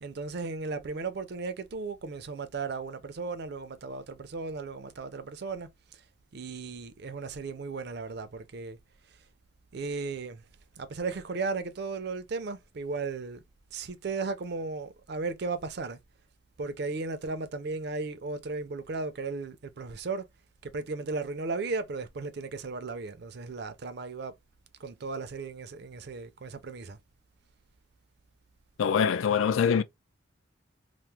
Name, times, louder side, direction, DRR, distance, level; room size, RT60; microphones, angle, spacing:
voice 1, 0.0-6.0 6.3-8.8 9.1-9.2 9.7-10.5 10.8-13.4 13.7-16.0 16.6-20.3 20.6-24.3 24.8-27.0, right 4 dB, 50° right, 0.4 m, -35 dB
voice 2, 28.8-29.8, left 7 dB, 75° left, 0.4 m, -24 dB
2.9 x 2.0 x 3.3 m
head